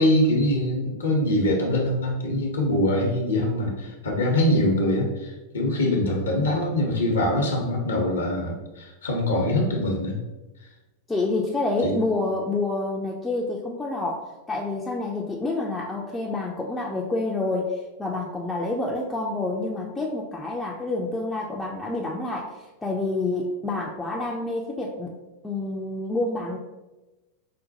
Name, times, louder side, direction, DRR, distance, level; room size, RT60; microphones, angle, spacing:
voice 1, 0.0-10.1 11.8-11.9, left 1 dB, 70° left, 0 dB, 0.7 m, -23 dB
voice 2, 11.1-25.1 25.4-26.6, left 2 dB, 10° left, -4 dB, 0.4 m, -28 dB
5.1 x 2.2 x 2.7 m, 1.1 s
figure-of-eight pair, 90°, 0 cm